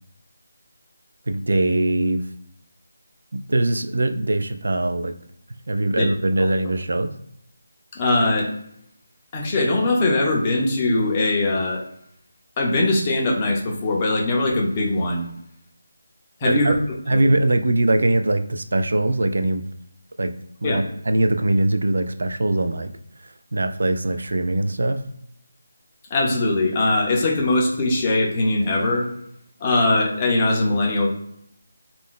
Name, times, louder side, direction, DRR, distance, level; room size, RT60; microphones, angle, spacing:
voice 1, 1.3-2.2 3.3-5.1 5.7-7.1 16.4-16.8 17.1-19.6 20.2-20.3 20.6-22.9 23.5-25.0, right 2 dB, 70° right, 9 dB, 0.3 m, -21 dB
voice 2, 7.9-8.5 9.3-11.8 12.6-15.2 16.4-16.7 17.1-17.3 20.6-20.8 26.1-29.1 29.6-31.1, left 2 dB, 20° left, -1 dB, 0.5 m, -21 dB
2.4 x 2.1 x 3.6 m, 0.72 s
figure-of-eight pair, 175°, 0 cm